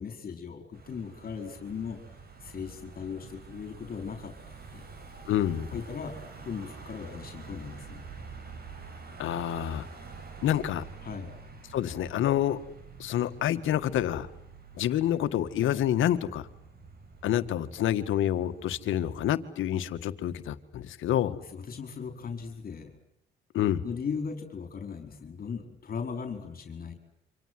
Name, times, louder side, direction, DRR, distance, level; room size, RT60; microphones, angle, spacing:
voice 1, 0.0-2.0 2.4-4.9 5.7-6.2 6.4-8.0 11.0-11.3 21.4-23.0 23.8-26.9, left 6 dB, 50° left, 6 dB, 4.8 m, -38 dB
Car passing by / Engine, 0.7-19.4, right 4 dB, 50° right, 7.0 m, -47 dB
voice 2, 5.3-5.8 9.2-9.9 10.4-10.9 11.7-12.6 13.0-14.3 14.8-16.5 17.2-21.3 23.5-23.8, left 11 dB, 80° left, 10 dB, 2.0 m, -28 dB
28.5 x 26.5 x 7.8 m, 0.74 s
cardioid pair, 90°, 20 cm